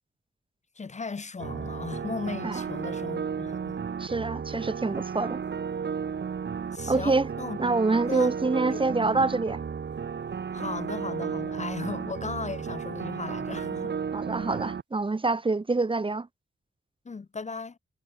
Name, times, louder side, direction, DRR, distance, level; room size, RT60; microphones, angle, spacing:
voice 1, 0.8-3.8 4.5-4.6 6.7-7.6 8.1-8.3 8.7-8.8 10.5-14.0 17.0-17.8, left 4 dB, 35° left, 0.9 m, -36 dB
sound 1, 1.4-14.8, right 6 dB, 55° right, 1.5 m, -33 dB
voice 2, 4.0-5.4 6.9-7.3 7.6-9.6 14.1-16.3, right 3 dB, 25° right, 0.9 m, -26 dB
wide cardioid pair, 120°, 21 cm